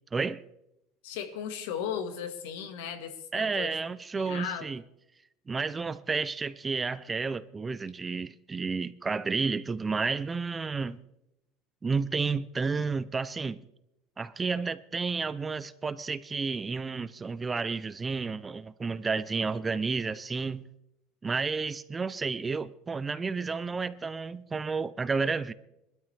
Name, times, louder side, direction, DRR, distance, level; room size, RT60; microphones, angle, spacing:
voice 1, 0.1-0.4 3.3-4.8 5.5-11.0 11.8-13.6 14.2-20.6 21.2-25.5, right 4 dB, 15° right, 0.4 m, -31 dB
voice 2, 1.0-3.8 4.2-4.7, left 8 dB, 85° left, 1.7 m, -36 dB
21.5 x 12.5 x 3.4 m
cardioid pair, 160°, 0 cm